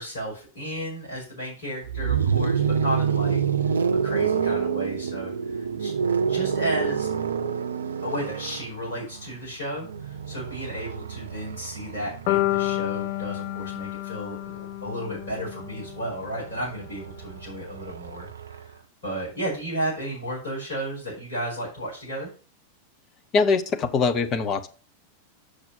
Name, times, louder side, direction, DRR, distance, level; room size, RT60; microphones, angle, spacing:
voice 1, 0.0-3.4 4.0-5.3 5.8-5.9 6.3-7.1 8.0-18.7 19.0-22.3, equal, 65° left, -5 dB, 4.8 m, -33 dB
sound 1, 1.8-13.8 15.1-18.7, right 6 dB, 70° right, 0.5 m, -28 dB
sound 2, 12.3-16.4, left 18 dB, 45° left, 0.4 m, -29 dB
voice 2, 23.3-24.7, left 4 dB, 30° left, 8 dB, 0.9 m, -22 dB
6.6 x 6.0 x 5.4 m, 0.37 s
figure-of-eight pair, 90°, 0 cm